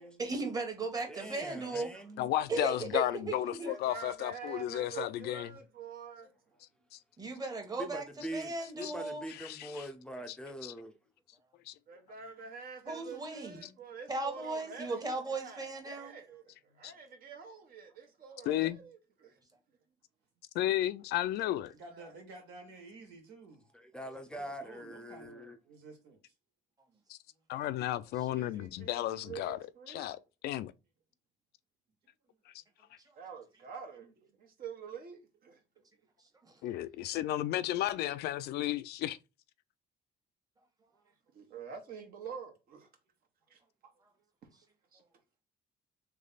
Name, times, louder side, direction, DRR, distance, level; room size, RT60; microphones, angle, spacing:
voice 1, 0.2-1.9 2.5-3.7 7.2-8.0 8.3-9.2 12.8-13.7 14.1-16.1 36.4-36.5, right 3 dB, 20° right, 1.2 m, -36 dB
voice 2, 1.1-2.3 7.8-10.9 23.7-25.6, right 1 dB, 5° left, 0.5 m, -43 dB
voice 3, 2.2-5.5 6.9-7.0 8.8-8.9 9.4-9.8 10.6-10.7 11.7-11.8 16.8-16.9 18.5-18.8 20.5-21.7 27.1-27.2 27.5-29.6 29.9-30.7 36.6-39.2, left 13 dB, 75° left, 0.4 m, -33 dB
voice 4, 3.6-6.3 11.9-19.3 21.9-22.2 28.3-30.1 33.2-35.6 41.3-42.9 43.5-43.6 44.9-45.0, right 5 dB, 60° right, 1.2 m, -47 dB
voice 5, 6.5-6.9 11.9-12.0 16.7-17.0 17.9-18.0 19.3-19.5 21.7-23.8 24.3-26.3 32.2-32.4 40.9-41.1 43.6-43.7, right 3 dB, 85° right, 1.9 m, -54 dB
3.3 x 3.2 x 3.9 m
cardioid pair, 110°, 17 cm